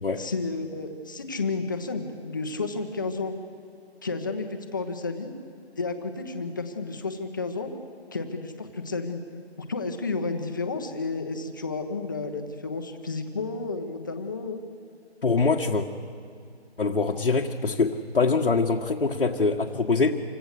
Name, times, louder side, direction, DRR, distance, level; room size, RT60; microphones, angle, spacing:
voice 1, 0.2-3.3 4.0-5.3 5.8-7.7 8.1-9.2 9.6-14.6, left 3 dB, 20° left, 6 dB, 1.1 m, -31 dB
voice 2, 15.2-15.9 16.8-20.2, left 4 dB, 65° left, -1 dB, 1.6 m, -24 dB
27.0 x 25.0 x 6.6 m, 2.3 s
figure-of-eight pair, 170°, 33 cm